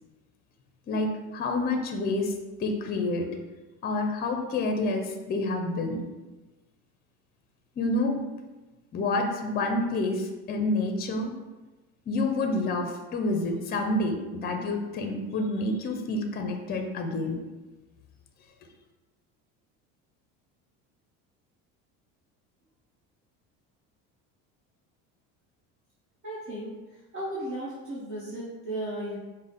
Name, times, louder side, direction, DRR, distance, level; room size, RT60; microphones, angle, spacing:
voice 1, 0.9-2.3 2.6-3.3 3.8-6.0 7.8-8.2 8.9-11.3 12.1-17.4, left 2 dB, 30° left, 4 dB, 0.5 m, -28 dB
voice 2, 26.2-26.7 27.1-29.2, right 1 dB, 40° right, -8 dB, 1.1 m, -35 dB
4.8 x 2.1 x 4.0 m, 1.2 s
cardioid pair, 120°, 33 cm